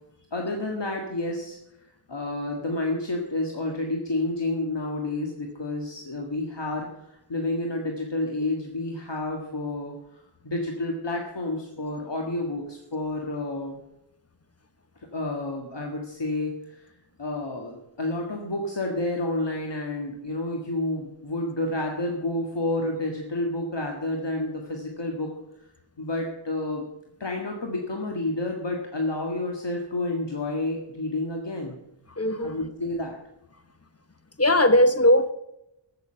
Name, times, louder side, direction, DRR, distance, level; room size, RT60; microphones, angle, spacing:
voice 1, 0.3-1.6 2.1-13.8 15.0-16.9 17.2-25.3 26.0-26.8 27.2-31.8 32.4-33.2, left 2 dB, 65° left, 1 dB, 1.8 m, -30 dB
voice 2, 32.2-32.6 34.4-35.3, left 1 dB, 30° left, 11 dB, 1.1 m, -19 dB
14.5 x 6.8 x 7.6 m, 0.86 s
wide cardioid pair, 60°, 46 cm